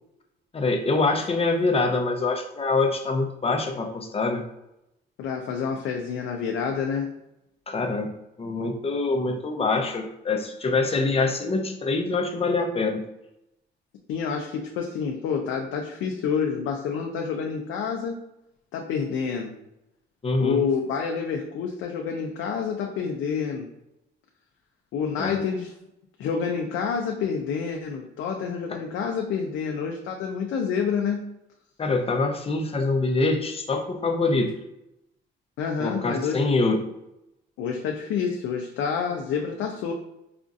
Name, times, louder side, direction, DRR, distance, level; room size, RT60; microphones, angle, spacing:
voice 1, 0.5-4.4 7.7-8.1 8.4-13.0 20.2-20.6 25.2-25.4 31.8-34.5 35.8-36.8, left 3 dB, 30° left, 5 dB, 0.6 m, -25 dB
voice 2, 5.2-7.1 14.1-18.2 18.7-19.5 20.4-23.7 24.9-25.7 26.2-31.2 35.6-36.4 37.6-39.9, left 6 dB, 85° left, 2 dB, 0.5 m, -28 dB
5.0 x 2.5 x 2.4 m, 0.86 s
cardioid pair, 90°, 20 cm